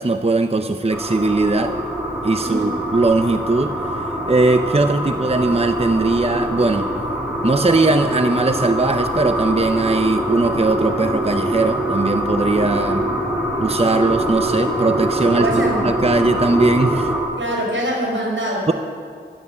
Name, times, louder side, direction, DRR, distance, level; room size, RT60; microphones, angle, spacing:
voice 1, 0.0-1.7 2.2-6.9 7.4-13.0 13.6-17.1 18.7-18.8, right 3 dB, 30° right, 7 dB, 0.7 m, -19 dB
sound 1, 0.9-17.2, right 1 dB, 5° right, 5.3 m, -24 dB
voice 2, 2.4-2.7 5.0-5.2 12.5-13.1 15.3-15.8 17.4-18.7, right 1 dB, 90° right, -2 dB, 5.1 m, -25 dB
14.0 x 12.5 x 8.3 m, 2.1 s
wide cardioid pair, 60°, 20 cm